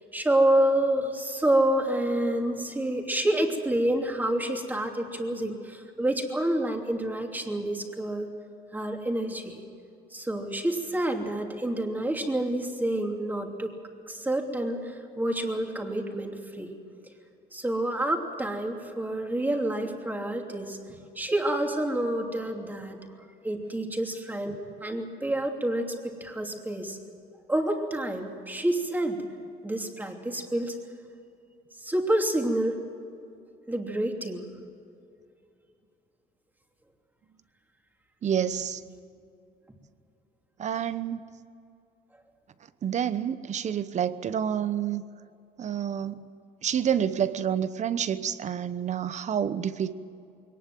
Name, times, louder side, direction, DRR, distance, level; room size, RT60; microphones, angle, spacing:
voice 1, 0.1-8.3 8.7-9.6 10.1-13.7 14.1-16.7 17.5-23.0 23.4-27.0 27.5-29.2 29.6-30.8 31.8-32.8 33.7-34.5, right 1 dB, 10° right, 2 dB, 3.0 m, -28 dB
voice 2, 38.2-38.8 40.6-41.2 42.8-45.0 45.6-46.3 46.6-49.9, right 9 dB, 45° right, 14 dB, 1.0 m, -28 dB
22.0 x 19.0 x 7.8 m, 2.5 s
cardioid pair, 110°, 17 cm